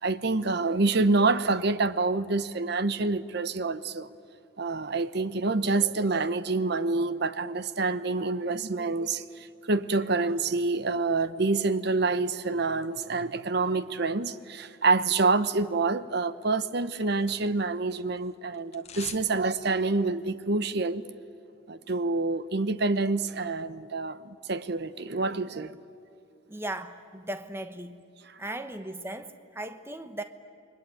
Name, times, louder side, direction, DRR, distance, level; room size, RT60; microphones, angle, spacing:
voice 1, 0.0-4.1 4.6-21.0 21.7-25.7 28.3-28.4, right 3 dB, 55° right, 0.8 m, -27 dB
sound 1, 16.5-17.8 18.0-19.3 19.6-19.7, left 6 dB, 35° left, 1.4 m, -46 dB
voice 2, 26.5-28.0 28.4-30.2, right 1 dB, 10° right, 1.0 m, -37 dB
29.0 x 22.5 x 9.0 m
head